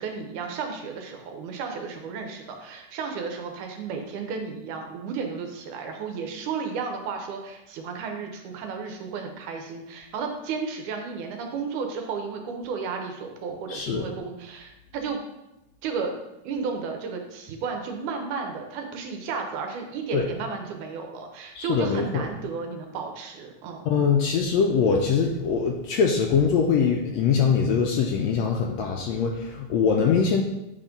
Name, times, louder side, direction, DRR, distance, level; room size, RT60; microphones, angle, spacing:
voice 1, 0.0-15.2 15.8-16.1 16.4-23.8, right 5 dB, 80° right, 4 dB, 2.3 m, -33 dB
voice 2, 13.7-14.1 20.1-20.3 21.6-22.2 23.8-30.4, left 6 dB, 80° left, 1 dB, 1.7 m, -23 dB
8.5 x 3.6 x 5.2 m, 0.92 s
omnidirectional pair, 3.5 m